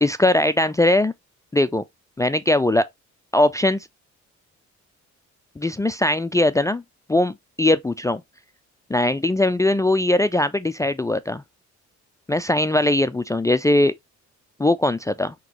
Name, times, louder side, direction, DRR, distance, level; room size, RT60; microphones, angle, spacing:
voice 1, 0.0-1.1 1.5-1.8 2.2-2.9 3.3-3.9 5.6-6.8 7.1-8.2 8.9-11.4 12.3-13.9 14.6-15.3, left 1 dB, 10° left, 0.3 m, -20 dB
5.8 x 3.0 x 3.0 m
cardioid pair, 90°, 30 cm